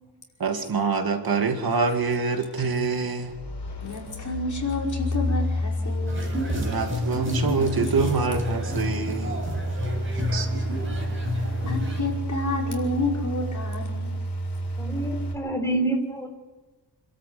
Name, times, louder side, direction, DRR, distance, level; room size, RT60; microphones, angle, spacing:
voice 1, 0.4-3.3 6.6-9.4 10.1-10.5, right 4 dB, 60° right, 5 dB, 2.4 m, -25 dB
sound 1, 1.3-15.3, equal, 75° left, 4.8 m, -31 dB
voice 2, 3.8-6.3 10.6-10.8 11.3-14.1, left 2 dB, 45° left, -1 dB, 5.6 m, -30 dB
sound 2, 6.1-12.0, left 1 dB, 30° right, 6.6 m, -30 dB
voice 3, 14.8-16.3, right 2 dB, 5° left, 2 dB, 4.2 m, -27 dB
28.5 x 13.0 x 8.6 m, 1.2 s
wide cardioid pair, 160°, 41 cm